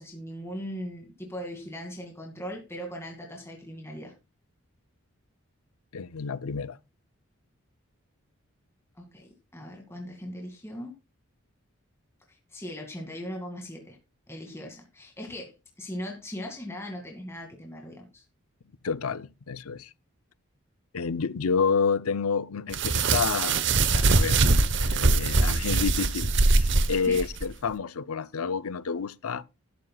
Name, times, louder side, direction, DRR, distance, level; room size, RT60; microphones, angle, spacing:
voice 1, 0.0-4.1 9.0-10.9 12.3-14.0 14.3-18.2 27.1-27.3, equal, 10° left, 2.1 m, -39 dB
voice 2, 5.9-6.8 18.8-19.9 20.9-24.4 24.7-29.4, left 5 dB, 85° left, 0.6 m, -29 dB
sound 1, 22.7-27.5, right 3 dB, 55° right, 0.9 m, -22 dB
12.5 x 12.0 x 2.3 m
head